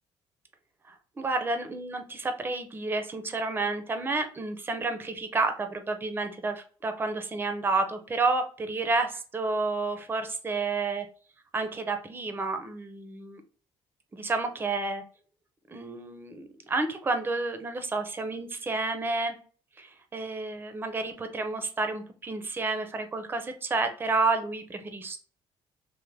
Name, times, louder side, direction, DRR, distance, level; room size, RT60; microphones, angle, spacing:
voice 1, 0.9-11.1 11.5-13.4 14.1-15.0 15.7-19.4 19.8-25.2, right 3 dB, 20° right, 7 dB, 0.5 m, -30 dB
3.4 x 2.1 x 3.2 m, 0.40 s
cardioid pair, 115°, 10 cm